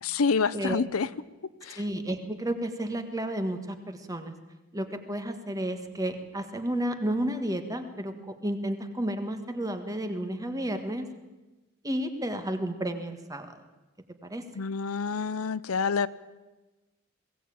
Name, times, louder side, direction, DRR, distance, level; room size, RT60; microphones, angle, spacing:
voice 1, 0.0-1.1 1.6-1.8 14.5-16.1, left 5 dB, 80° left, 16 dB, 0.6 m, -27 dB
voice 2, 1.7-4.3 4.7-11.1 11.8-13.5 14.2-14.4, right 1 dB, 15° right, 7 dB, 1.5 m, -32 dB
21.5 x 17.0 x 8.7 m, 1.1 s
head